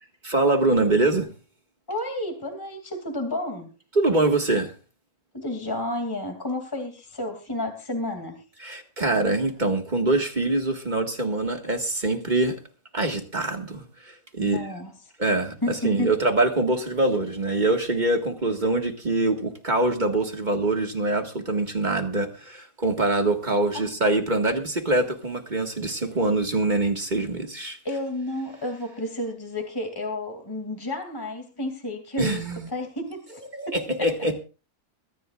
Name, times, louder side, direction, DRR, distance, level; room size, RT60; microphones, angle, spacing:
voice 1, 0.2-1.3 4.0-4.7 8.6-12.6 12.9-14.6 15.2-27.8 32.2-32.7 33.5-34.3, right 2 dB, 30° right, 1.9 m, -24 dB
voice 2, 1.9-3.7 5.3-8.4 14.4-14.9 15.6-16.2 23.7-23.9 27.8-33.4 33.7-34.1, left 1 dB, 15° left, 2.7 m, -31 dB
22.5 x 14.0 x 2.5 m
omnidirectional pair, 1.6 m